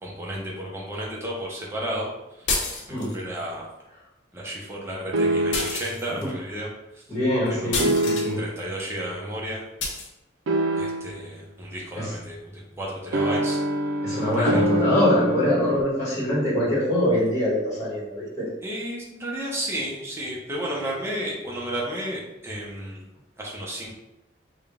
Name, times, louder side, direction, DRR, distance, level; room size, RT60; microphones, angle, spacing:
voice 1, 0.0-2.1 2.4-2.5 2.9-3.7 4.3-6.7 6.9-7.0 7.5-7.9 8.4-9.6 10.8-13.6 14.1-14.6 18.6-23.0 23.4-23.9, right 1 dB, 15° right, -4 dB, 0.7 m, -32 dB
sound 1, 2.5-3.2 5.5-6.3 7.7-8.3 9.8-10.1, left 3 dB, 75° left, 0.7 m, -29 dB
sound 2, 5.1-5.9 7.8-8.6 10.5-11.3 13.1-15.8, right 1 dB, 90° right, 0.4 m, -25 dB
voice 2, 7.1-8.4 11.9-12.1 14.0-18.5, left 1 dB, 20° left, -8 dB, 1.3 m, -24 dB
3.6 x 2.3 x 3.6 m, 0.94 s
head